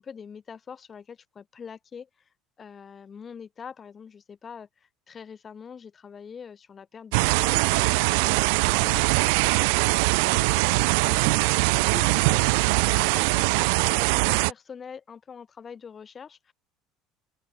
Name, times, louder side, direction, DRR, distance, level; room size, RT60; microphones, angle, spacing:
voice 1, 0.0-2.3 2.6-9.1 9.5-12.5 12.8-16.5, left 6 dB, 20° left, 3.2 m, -44 dB
sound 1, 7.1-14.5, right 32 dB, 85° right, 0.3 m, -22 dB
open air
cardioid pair, 160°, 0 cm